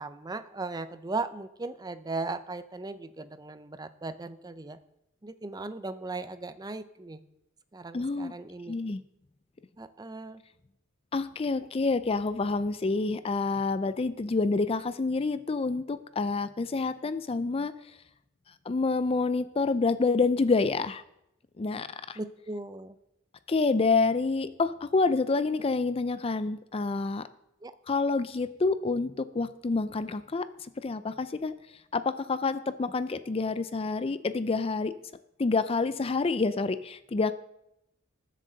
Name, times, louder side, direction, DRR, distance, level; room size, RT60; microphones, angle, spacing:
voice 1, 0.0-4.8 5.2-7.2 7.7-8.7 9.8-10.4 22.2-23.0 27.6-27.7, right 3 dB, 20° right, 12 dB, 0.6 m, -37 dB
voice 2, 7.9-8.3 8.7-9.0 11.1-17.7 18.7-21.0 21.6-22.2 23.5-27.3 27.9-30.5 30.8-31.5 31.9-34.9 35.4-37.3, left 3 dB, 30° left, 13 dB, 0.4 m, -28 dB
20.0 x 7.5 x 4.0 m, 0.82 s
head